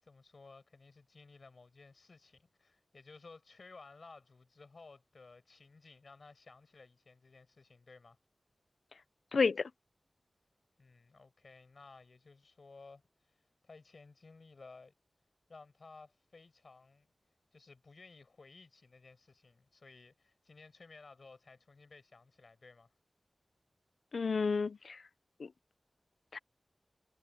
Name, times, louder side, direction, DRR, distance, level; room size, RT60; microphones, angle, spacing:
voice 1, 0.0-8.2 10.8-13.0 13.6-14.9 15.5-17.1 17.5-22.9, left 3 dB, 65° left, 6.8 m, -57 dB
voice 2, 9.3-9.7 24.1-25.0 25.4-25.5 26.3-26.4, left 4 dB, 90° left, 0.6 m, -31 dB
wide cardioid pair, 95°, 0 cm